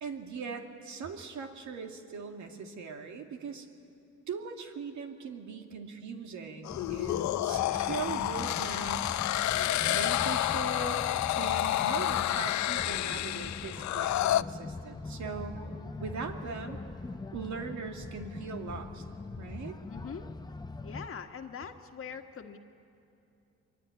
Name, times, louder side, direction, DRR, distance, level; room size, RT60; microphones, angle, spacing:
voice 1, 0.0-3.7 4.3-9.2 9.8-11.0 11.4-15.6 16.0-16.8 17.3-19.0 19.4-19.8, right 5 dB, 70° right, 4 dB, 2.4 m, -40 dB
sound 1, 6.6-14.4, left 14 dB, 70° left, 0.6 m, -29 dB
sound 2, 6.7-21.1, left 3 dB, 15° left, 0.7 m, -42 dB
voice 2, 19.9-20.3 20.8-22.6, left 6 dB, 45° left, 5 dB, 1.7 m, -42 dB
23.5 x 23.5 x 9.6 m, 2.6 s
cardioid pair, 90°, 30 cm